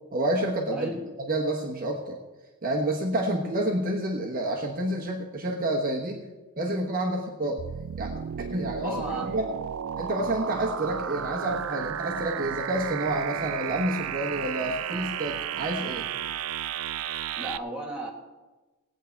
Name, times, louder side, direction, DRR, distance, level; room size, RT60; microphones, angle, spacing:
voice 1, 0.1-0.9 1.2-2.2 2.6-6.2 6.6-7.6 8.0-9.5 10.0-16.1, right 1 dB, 40° right, -1 dB, 1.2 m, -29 dB
voice 2, 0.7-1.1 8.8-9.3 17.4-18.1, right 1 dB, 5° right, -3 dB, 2.1 m, -34 dB
sound 1, 7.6-17.6, right 8 dB, 70° right, 0.4 m, -33 dB
19.0 x 8.5 x 4.6 m, 1.2 s
head